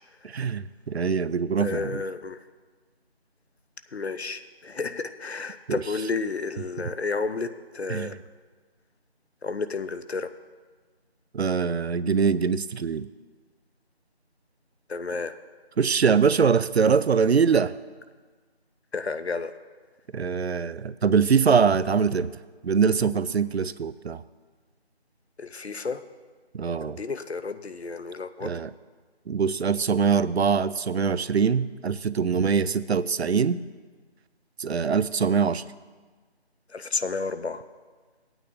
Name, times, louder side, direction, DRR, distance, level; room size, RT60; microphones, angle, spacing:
voice 1, 0.2-2.0 5.7-5.8 7.9-8.2 11.3-13.1 15.8-17.7 20.1-22.3 22.6-24.2 26.5-27.0 28.4-28.7 29.3-33.6 34.6-35.6, right 6 dB, 75° right, 16 dB, 0.5 m, -23 dB
voice 2, 1.6-2.4 3.9-8.2 9.4-10.3 14.9-15.3 18.9-19.5 25.4-26.0 26.6-28.5 36.7-37.6, left 4 dB, 75° left, 11 dB, 0.7 m, -31 dB
16.5 x 9.0 x 2.7 m, 1.4 s
figure-of-eight pair, 175°, 32 cm